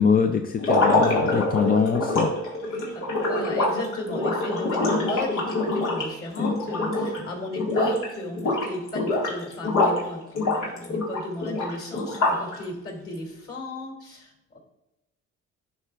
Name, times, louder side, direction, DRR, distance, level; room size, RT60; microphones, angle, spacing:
voice 1, 0.0-2.3, left 6 dB, 30° left, 6 dB, 0.4 m, -22 dB
sound 1, 0.6-7.3 7.6-8.1 8.4-10.0 10.4-12.6, left 2 dB, 85° left, 1.9 m, -24 dB
voice 2, 2.6-14.6, left 2 dB, 50° left, 1 dB, 2.4 m, -35 dB
11.0 x 4.5 x 2.4 m, 0.97 s
cardioid pair, 90°, 30 cm